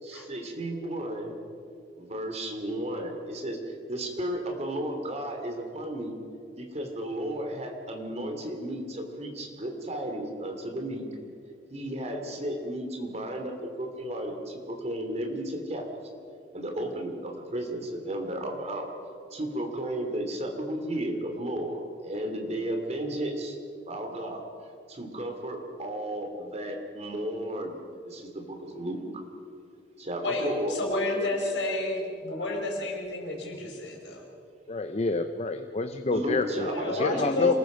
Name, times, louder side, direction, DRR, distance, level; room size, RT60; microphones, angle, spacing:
voice 1, 0.0-1.3 2.0-3.6 3.9-6.2 6.5-11.0 11.7-15.9 16.5-18.9 19.3-23.6 23.9-24.4 24.9-29.0 30.0-30.8 31.1-31.5 36.1-37.5, right 1 dB, 40° right, 3 dB, 3.0 m, -33 dB
voice 2, 30.2-34.2 36.5-37.6, left 2 dB, 90° left, 0 dB, 5.0 m, -31 dB
voice 3, 34.7-36.7 37.0-37.5, left 3 dB, 35° left, 8 dB, 0.7 m, -28 dB
27.0 x 20.0 x 5.2 m, 2.5 s
head